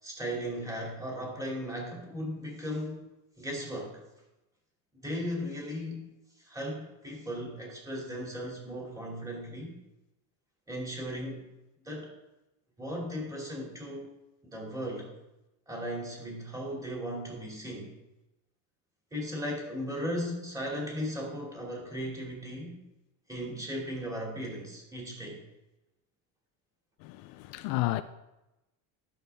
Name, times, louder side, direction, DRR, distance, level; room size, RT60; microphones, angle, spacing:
voice 1, 0.0-3.1 3.4-4.0 5.0-6.1 6.4-9.7 10.7-11.4 11.8-12.1 12.8-14.1 14.4-15.1 15.7-17.9 19.1-22.9 23.3-25.4, equal, 10° right, 2.7 m, -37 dB
voice 2, 27.0-28.0, left 18 dB, 65° left, 0.5 m, -31 dB
11.0 x 7.1 x 3.5 m
cardioid pair, 145°, 39 cm